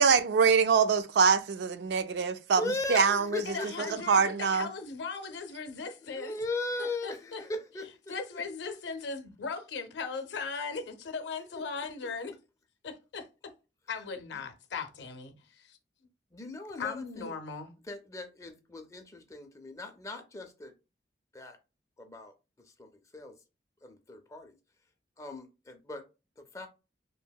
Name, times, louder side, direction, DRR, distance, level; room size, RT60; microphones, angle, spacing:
voice 1, 0.0-3.4 4.1-4.7, right 5 dB, 70° right, 0.3 m, -24 dB
voice 2, 2.6-3.9 6.0-7.9 11.6-11.7 14.3-14.4 16.3-17.3 17.9-20.7 21.3-21.6 22.0-22.3 22.8-23.4 23.8-24.5 25.2-26.0 26.4-26.7, left 2 dB, 20° left, 0.4 m, -38 dB
voice 3, 3.5-6.4 6.8-7.4 8.1-12.3 12.8-13.5 13.9-15.8 16.8-17.7, left 5 dB, 80° left, 0.5 m, -38 dB
2.7 x 2.7 x 2.2 m
head